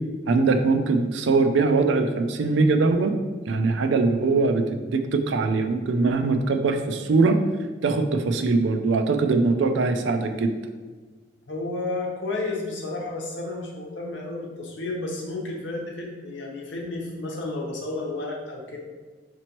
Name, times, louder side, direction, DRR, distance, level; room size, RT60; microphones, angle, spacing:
voice 1, 0.3-3.1 3.5-7.4 7.8-10.5, right 3 dB, 65° right, 6 dB, 0.4 m, -22 dB
voice 2, 11.5-18.8, left 2 dB, 65° left, -1 dB, 0.9 m, -32 dB
5.2 x 3.0 x 2.9 m, 1.4 s
head